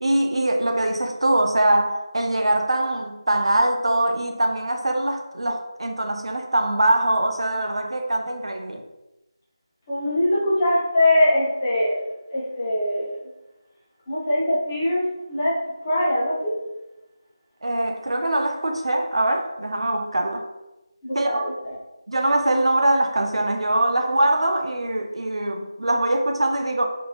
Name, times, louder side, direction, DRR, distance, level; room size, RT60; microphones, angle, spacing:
voice 1, 0.0-8.8 17.6-20.4 21.1-21.5 22.1-26.9, right 1 dB, 90° right, 0.4 m, -22 dB
voice 2, 9.9-12.0 12.3-13.1 14.1-15.5 15.8-16.5 21.0-21.7, left 1 dB, 25° left, 0.8 m, -22 dB
2.7 x 2.6 x 2.3 m
figure-of-eight pair, 170°, 3 cm